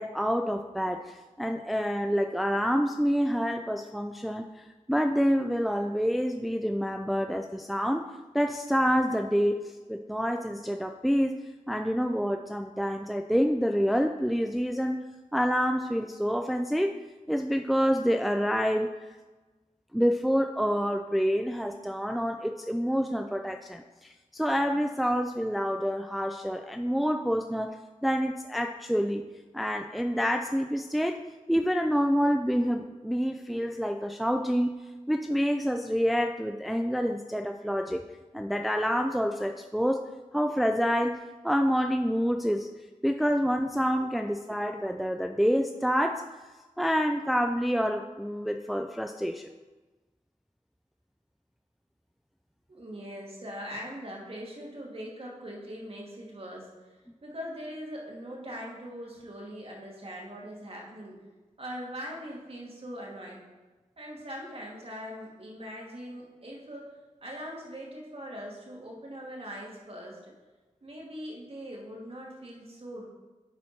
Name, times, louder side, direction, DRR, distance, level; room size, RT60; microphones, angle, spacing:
voice 1, 0.0-8.1 8.3-11.4 11.7-15.1 15.3-17.0 17.3-18.9 19.9-27.8 28.0-29.2 29.5-31.2 31.5-34.7 35.1-38.0 38.3-40.0 40.3-42.7 43.0-46.2 46.8-49.5, equal, ahead, 5 dB, 0.4 m, -27 dB
voice 2, 52.7-56.7 57.2-61.2 61.6-63.4 64.0-66.9 67.2-70.3 70.8-73.1, equal, 50° right, -3 dB, 2.6 m, -41 dB
10.5 x 4.3 x 4.4 m, 1.2 s
cardioid pair, 55°, 13 cm